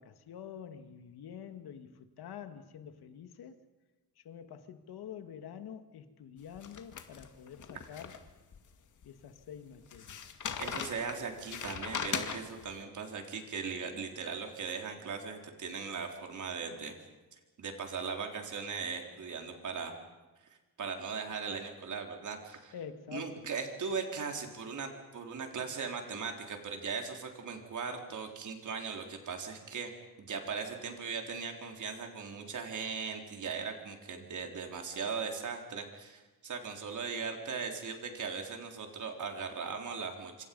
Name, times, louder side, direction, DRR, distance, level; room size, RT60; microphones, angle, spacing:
voice 1, 0.0-3.6 4.2-8.1 9.0-10.2 22.7-23.4, left 8 dB, 75° left, 9 dB, 2.1 m, -47 dB
sound 1, 6.5-8.6 9.0-9.1 9.9-12.7, left 7 dB, 50° left, 2.2 m, -39 dB
voice 2, 10.6-16.9 17.6-19.9 20.8-22.7 23.1-29.9 30.2-40.4, right 5 dB, 50° right, 3 dB, 4.1 m, -39 dB
27.0 x 26.0 x 5.5 m, 1.2 s
cardioid pair, 130°, 38 cm